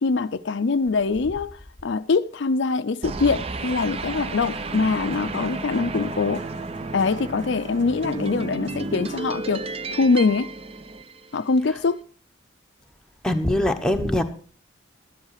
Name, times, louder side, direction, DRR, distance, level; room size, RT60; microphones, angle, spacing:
voice 1, 0.0-6.4 6.9-9.7 9.9-10.5 11.3-12.0, left 4 dB, 60° left, 0.5 m, -23 dB
sound 1, 3.0-11.6, right 3 dB, 30° right, 0.5 m, -33 dB
sound 2, 4.1-9.5, right 1 dB, 65° right, 1.9 m, -39 dB
voice 2, 13.2-14.2, left 1 dB, 5° left, 0.9 m, -22 dB
12.0 x 10.5 x 4.8 m
head